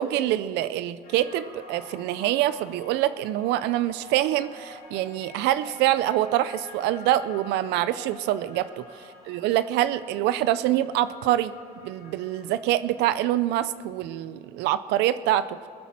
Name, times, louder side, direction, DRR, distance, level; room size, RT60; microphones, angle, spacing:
voice 1, 0.0-8.8 9.3-11.5 11.8-15.6, right 13 dB, 90° right, 14 dB, 0.5 m, -25 dB
sound 1, 1.0-13.3, left 3 dB, 65° left, 2.9 m, -48 dB
22.0 x 8.3 x 7.4 m, 2.5 s
cardioid pair, 110°, 17 cm